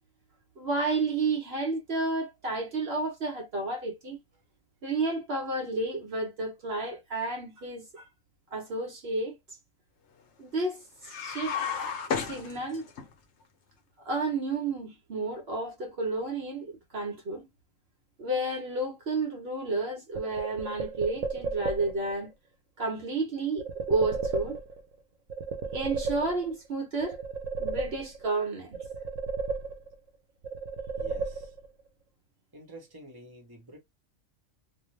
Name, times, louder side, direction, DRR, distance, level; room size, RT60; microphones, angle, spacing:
voice 1, 0.6-4.2 4.8-8.0 8.5-9.4 10.4-11.6 12.2-12.9 14.0-17.5 18.2-22.3 22.8-24.6 25.7-27.2 27.6-28.8, right 3 dB, 60° right, 1.0 m, -31 dB
sound 1, 11.0-13.1, left 6 dB, 70° left, 1.0 m, -32 dB
sound 2, 20.1-22.1 23.6-24.9 25.3-26.7 27.0-28.4 28.7-30.1 30.4-31.8, right 4 dB, 85° right, 1.0 m, -34 dB
voice 2, 31.0-31.6 32.5-33.8, right 1 dB, 20° right, 0.9 m, -48 dB
2.5 x 2.2 x 3.1 m
omnidirectional pair, 1.3 m